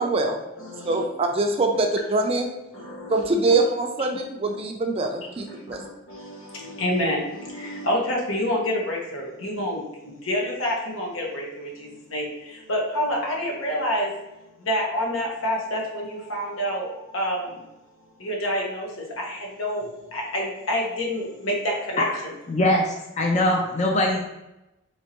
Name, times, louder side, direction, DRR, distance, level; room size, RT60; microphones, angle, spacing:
voice 1, 0.0-0.4 0.8-2.5 3.1-5.8, right 2 dB, 30° right, 3 dB, 0.4 m, -23 dB
voice 2, 0.6-1.0 2.7-3.3 5.4-14.1 14.6-17.6 18.2-22.0, equal, 80° left, -1 dB, 1.1 m, -28 dB
voice 3, 22.5-24.2, left 1 dB, 35° left, 1 dB, 0.4 m, -22 dB
4.4 x 2.9 x 3.0 m, 0.94 s
head